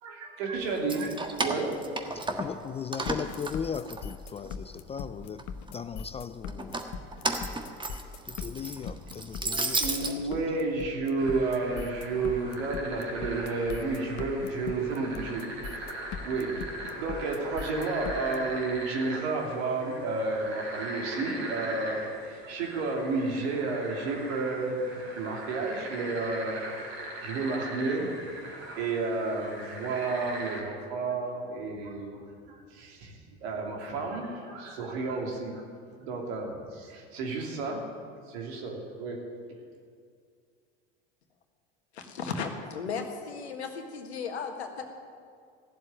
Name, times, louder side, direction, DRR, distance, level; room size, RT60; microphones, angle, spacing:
voice 1, 0.0-2.0 9.4-15.9 16.2-16.5 16.9-26.8 27.1-28.1 28.5-35.6 36.0-37.8 38.3-39.2 39.5-39.6, right 3 dB, 70° right, 2.9 m, -32 dB
Keys jangling, 0.7-2.6 2.9-4.5 5.0-5.7 6.5-10.1, right 2 dB, 15° right, 1.5 m, -33 dB
voice 2, 2.1-6.9 8.3-10.6, left 7 dB, 20° left, 0.4 m, -38 dB
sound 1, 3.1-18.4, left 6 dB, 60° left, 1.1 m, -40 dB
sound 2, 11.2-30.6, right 1 dB, 55° right, 4.5 m, -40 dB
voice 3, 41.9-44.8, left 5 dB, 90° left, 1.7 m, -35 dB
15.5 x 7.5 x 10.0 m
hypercardioid pair, 80°, 32 cm